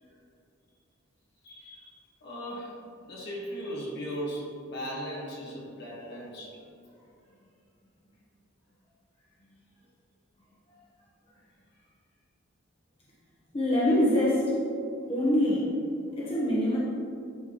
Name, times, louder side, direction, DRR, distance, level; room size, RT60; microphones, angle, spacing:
voice 1, 1.4-2.0 2.2-6.6, equal, 55° left, -4 dB, 1.7 m, -38 dB
voice 2, 13.5-14.4 15.1-15.7 16.2-16.8, left 1 dB, 25° left, -8 dB, 1.2 m, -24 dB
10.5 x 4.7 x 3.1 m, 2.5 s
head